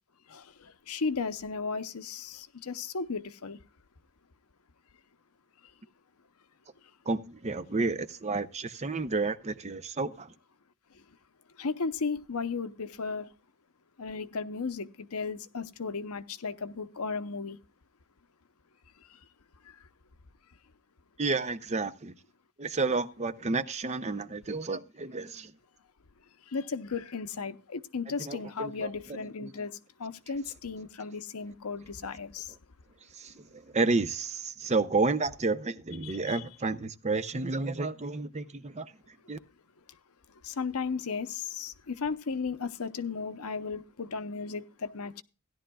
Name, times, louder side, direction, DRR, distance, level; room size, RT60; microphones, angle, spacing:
voice 1, 0.3-3.6 11.6-13.3 14.0-17.6 26.5-32.5 36.0-36.4 40.4-45.2, left 4 dB, 75° left, 0.8 m, -35 dB
voice 2, 7.1-10.3 21.2-22.1 22.6-25.5 28.2-28.9 29.4-29.5 33.2-38.9 39.3-39.4, right 3 dB, 30° right, 0.6 m, -31 dB
16.5 x 11.0 x 2.3 m
head